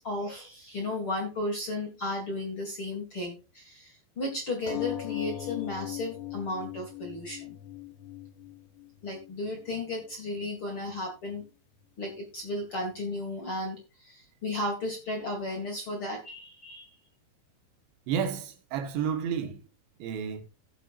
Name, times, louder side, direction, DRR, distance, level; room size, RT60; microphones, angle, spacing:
voice 1, 0.0-7.6 9.0-11.4 12.0-16.9, left 2 dB, 40° left, 2.1 m, -34 dB
sound 1, 4.7-9.7 10.4-10.5 10.8-10.9, left 15 dB, 65° left, 2.7 m, -38 dB
voice 2, 18.1-19.6 20.0-20.4, right 7 dB, 80° right, 3.7 m, -31 dB
17.0 x 7.5 x 2.5 m
omnidirectional pair, 5.2 m